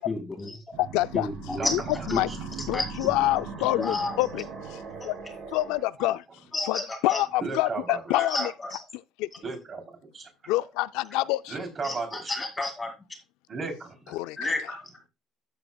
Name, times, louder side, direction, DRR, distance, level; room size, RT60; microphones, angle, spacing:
voice 1, 0.1-0.8 1.1-1.8 2.1-2.2 2.7-3.1 3.7-4.2 6.5-7.2 8.1-8.8 11.8-12.9 14.4-14.8, left 2 dB, 10° left, 2.2 m, -31 dB
sound 1, 0.7-5.8, right 6 dB, 50° right, 4.1 m, -39 dB
voice 2, 0.8-1.3 1.7-1.8 2.1-2.3 2.7-4.8 5.0-5.1 5.5-6.2 6.7-8.5 8.9-9.3 10.5-11.6 14.1-14.5, left 17 dB, 90° left, 0.4 m, -27 dB
voice 3, 7.4-8.0 9.4-10.2 11.5-12.3 13.5-14.2, right 4 dB, 30° right, 3.2 m, -34 dB
13.0 x 7.7 x 2.3 m
cardioid pair, 170°, 0 cm